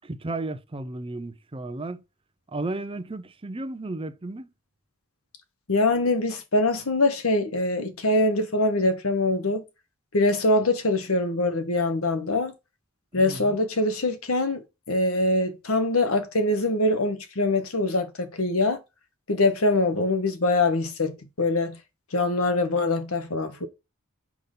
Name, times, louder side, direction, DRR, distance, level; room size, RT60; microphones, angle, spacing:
voice 1, 0.0-2.0 2.5-4.5 13.1-13.6, right 2 dB, 25° right, 0.6 m, -34 dB
voice 2, 5.7-9.6 10.1-12.5 13.1-18.8 19.3-21.1 21.4-21.8 22.1-23.7, left 2 dB, 90° left, 1.2 m, -23 dB
5.9 x 5.3 x 3.9 m
head